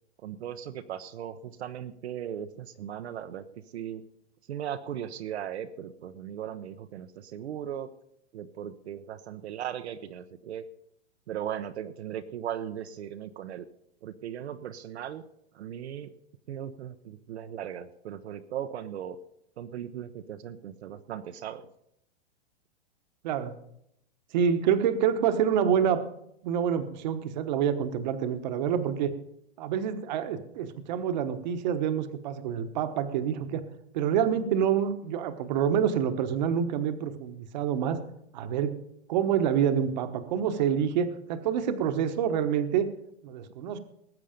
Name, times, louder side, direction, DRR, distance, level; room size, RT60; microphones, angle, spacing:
voice 1, 0.2-4.0 4.5-7.9 8.3-10.6 11.3-13.7 14.0-15.2 15.5-16.1 16.5-19.2 19.6-21.7, right 10 dB, 70° right, 8 dB, 0.9 m, -38 dB
voice 2, 24.3-26.0 26.4-29.1 29.6-33.6 33.9-38.0 38.3-38.8 39.1-42.9 43.2-43.8, right 8 dB, 40° right, 9 dB, 1.2 m, -27 dB
19.5 x 8.3 x 5.1 m, 0.77 s
hypercardioid pair, 165°, 33 cm